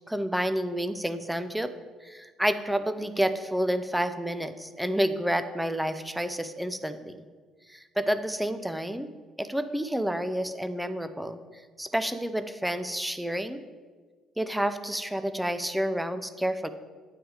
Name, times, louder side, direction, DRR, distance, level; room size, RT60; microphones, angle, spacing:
voice 1, 0.1-1.7 2.0-7.1 7.7-9.1 9.4-13.6 14.4-16.7, equal, ahead, 11 dB, 0.4 m, -29 dB
9.0 x 6.1 x 4.8 m, 1.5 s
cardioid pair, 165°, 0 cm